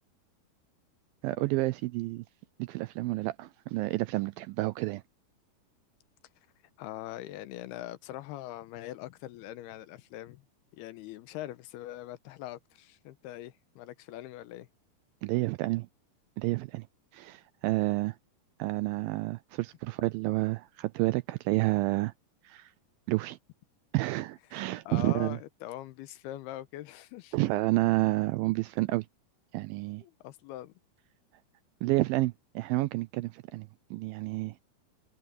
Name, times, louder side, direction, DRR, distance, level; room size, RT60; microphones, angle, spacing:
voice 1, 1.2-2.2 2.6-5.0 15.2-15.9 16.4-16.9 17.1-18.2 18.6-22.1 22.5-22.7 23.1-23.4 23.9-25.4 27.3-29.1 29.5-30.0 31.8-34.7, right 19 dB, 85° right, 2.1 m, -30 dB
voice 2, 6.8-10.4 10.7-14.7 24.5-27.4 30.0-30.7, left 14 dB, 90° left, 2.9 m, -42 dB
omnidirectional pair, 4.6 m